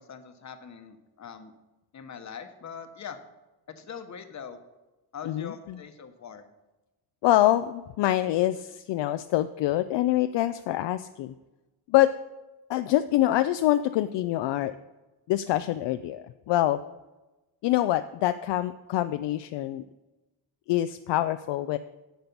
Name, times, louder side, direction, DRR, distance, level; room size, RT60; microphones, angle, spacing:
voice 1, 0.0-1.5 1.9-3.2 3.7-4.6 5.1-6.4, left 7 dB, 35° left, 8 dB, 1.1 m, -42 dB
voice 2, 5.2-5.8 7.2-11.3 11.9-12.1 12.7-14.7 15.3-16.8 17.6-19.8 20.7-21.8, left 14 dB, 65° left, 11 dB, 0.5 m, -25 dB
10.5 x 6.8 x 5.4 m, 1.1 s
cardioid pair, 110°, 47 cm